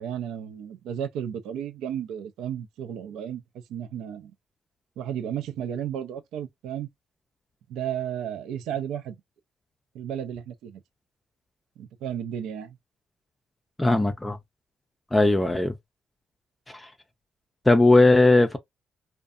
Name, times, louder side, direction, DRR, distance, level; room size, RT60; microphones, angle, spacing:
voice 1, 0.0-4.3 5.0-6.9 7.7-9.2 9.9-10.8 11.8-12.8, right 9 dB, 90° right, 0.4 m, -33 dB
voice 2, 13.8-14.4 15.1-15.7 16.7-16.9 17.7-18.6, left 2 dB, 15° left, 0.4 m, -18 dB
2.6 x 2.2 x 2.3 m
cardioid pair, 90°, 0 cm